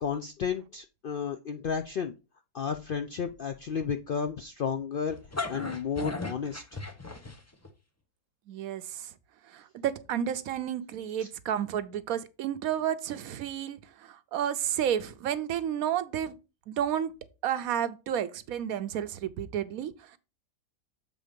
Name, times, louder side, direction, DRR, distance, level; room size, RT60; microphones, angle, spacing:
voice 1, 0.0-2.1 2.5-5.2 5.5-6.6 11.2-11.3, left 6 dB, 70° left, 0.5 m, -32 dB
sound 1, 5.1-7.7, left 3 dB, 15° left, 0.6 m, -36 dB
voice 2, 8.5-9.1 9.5-16.4 16.7-17.1 17.4-20.2, right 10 dB, 85° right, 1.1 m, -31 dB
7.4 x 3.9 x 5.1 m
omnidirectional pair, 1.5 m